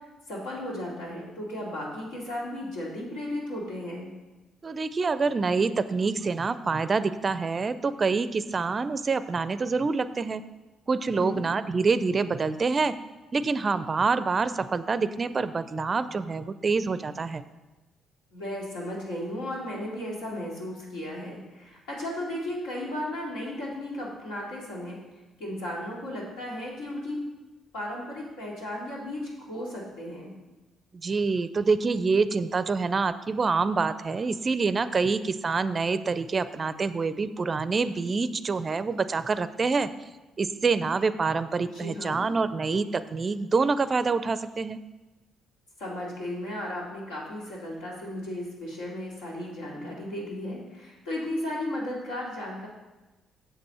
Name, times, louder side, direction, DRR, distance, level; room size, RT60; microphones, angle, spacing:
voice 1, 0.3-4.1 11.1-11.4 18.3-25.0 25.4-27.2 27.7-30.3 41.7-42.3 45.8-52.7, left 1 dB, 80° left, -4 dB, 2.4 m, -35 dB
voice 2, 4.6-10.4 10.9-12.9 13.3-17.4 30.9-39.9 40.4-44.8, right 4 dB, 40° right, 14 dB, 0.4 m, -26 dB
7.8 x 6.9 x 4.3 m, 1.1 s
hypercardioid pair, 50°, 0 cm